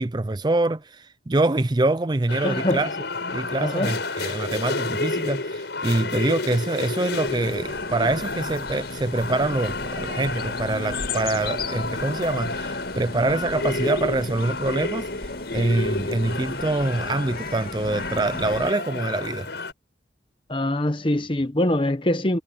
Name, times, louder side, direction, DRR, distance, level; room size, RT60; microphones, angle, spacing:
voice 1, 0.0-2.9 3.3-19.5, right 2 dB, 25° right, 0.5 m, -25 dB
sound 1, 2.3-19.7, left 3 dB, 70° left, 5.1 m, -31 dB
voice 2, 2.4-2.8 3.6-3.9 20.5-22.4, left 1 dB, 30° left, 1.1 m, -23 dB
sound 2, 7.3-18.7, left 2 dB, 55° left, 2.7 m, -36 dB
head